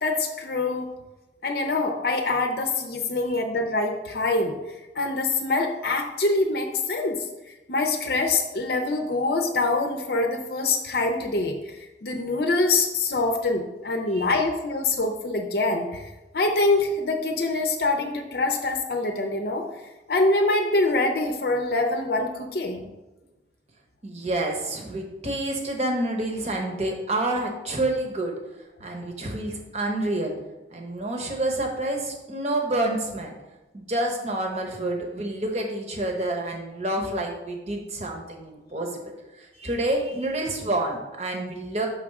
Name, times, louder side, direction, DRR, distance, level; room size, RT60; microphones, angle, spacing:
voice 1, 0.0-0.9 1.4-7.2 7.7-11.8 12.0-16.0 16.3-19.6 20.1-22.8, left 2 dB, 60° left, 4 dB, 0.6 m, -25 dB
voice 2, 24.0-28.3 28.8-30.3 30.7-33.3 33.7-41.9, right 1 dB, 35° right, 1 dB, 1.0 m, -28 dB
5.8 x 3.6 x 5.9 m, 1.1 s
head